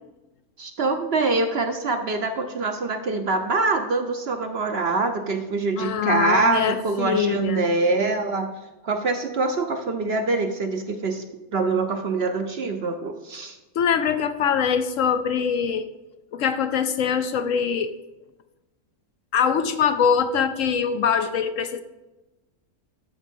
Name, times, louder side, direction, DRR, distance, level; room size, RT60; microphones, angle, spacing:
voice 1, 0.6-8.5 8.8-11.2 11.5-13.6, right 3 dB, 55° right, 6 dB, 0.8 m, -24 dB
voice 2, 5.8-7.6 13.8-15.9 16.3-17.9 19.3-21.8, left 7 dB, 70° left, 10 dB, 0.9 m, -23 dB
13.0 x 4.9 x 5.4 m, 1.1 s
omnidirectional pair, 1.6 m